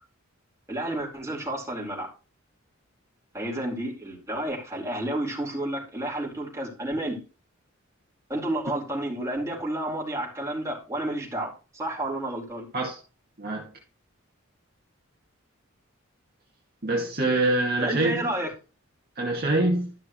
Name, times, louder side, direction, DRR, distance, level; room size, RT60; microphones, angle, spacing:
voice 1, 0.7-2.1 3.3-7.2 8.3-11.5 11.7-12.7 17.8-18.5, right 1 dB, 15° right, 4.5 m, -30 dB
voice 2, 13.4-13.7 16.8-18.2 19.2-19.9, right 2 dB, 45° right, 2.2 m, -25 dB
13.5 x 6.2 x 3.1 m
head